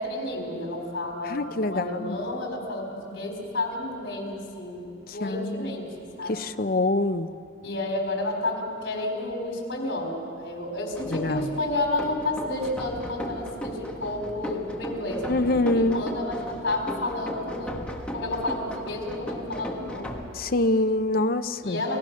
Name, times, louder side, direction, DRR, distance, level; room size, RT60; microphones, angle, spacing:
voice 1, 0.0-6.5 7.6-17.7 18.1-20.1 21.6-22.0, left 1 dB, 70° left, 2 dB, 4.3 m, -31 dB
voice 2, 1.2-2.2 5.2-5.8 6.3-7.3 11.1-11.5 15.3-16.0 20.3-21.8, left 2 dB, 50° left, 9 dB, 0.7 m, -25 dB
sound 1, 10.9-20.2, equal, 5° left, 1.7 m, -36 dB
29.5 x 17.0 x 6.4 m, 2.5 s
head